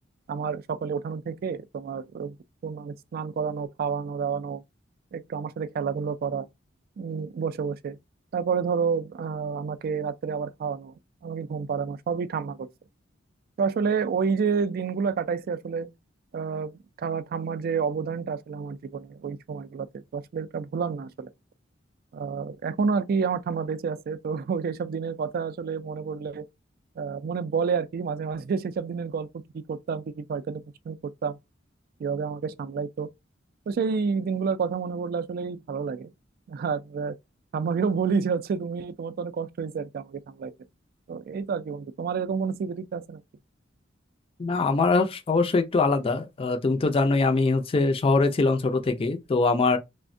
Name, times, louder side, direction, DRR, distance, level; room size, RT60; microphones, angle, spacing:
voice 1, 0.3-2.4 2.6-4.6 5.1-6.5 7.0-8.0 8.3-10.9 11.2-12.7 13.6-15.9 16.3-21.3 22.1-26.4 27.0-31.4 32.0-33.1 33.7-36.1 36.5-37.1 37.5-40.5 41.1-43.2, right 5 dB, 50° right, 0.3 m, -29 dB
voice 2, 44.4-49.8, left 3 dB, 30° left, 0.4 m, -23 dB
3.4 x 2.1 x 2.5 m
head